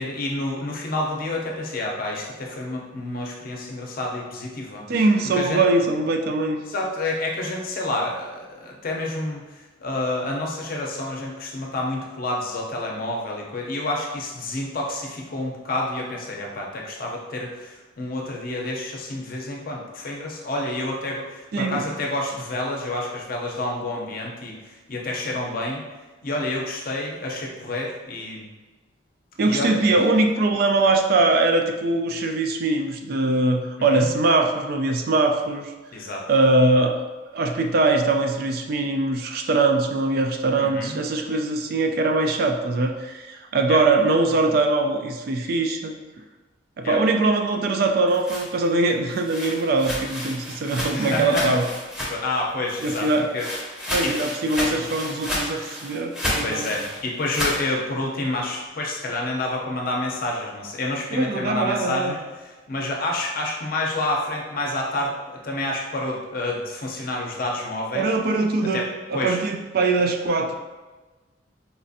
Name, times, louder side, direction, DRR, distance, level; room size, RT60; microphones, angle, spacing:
voice 1, 0.0-4.8 5.3-5.6 6.7-25.8 26.2-28.5 29.4-29.9 33.8-34.1 35.9-36.2 40.6-41.0 43.7-43.8 46.8-47.0 50.9-51.5 52.1-53.5 54.0-54.1 56.4-68.1 68.6-69.4, left 2 dB, 50° left, -1 dB, 0.6 m, -29 dB
voice 2, 4.9-6.6 21.5-21.8 29.4-35.7 36.3-37.0 37.3-45.9 46.8-51.7 52.8-53.3 53.9-56.7 61.1-62.1 67.9-68.8 69.1-70.5, right 2 dB, 55° right, 4 dB, 0.3 m, -22 dB
sound 1, 47.9-52.4 52.7-57.6, left 1 dB, 5° right, 0.7 m, -31 dB
4.2 x 2.4 x 2.6 m, 1.2 s
head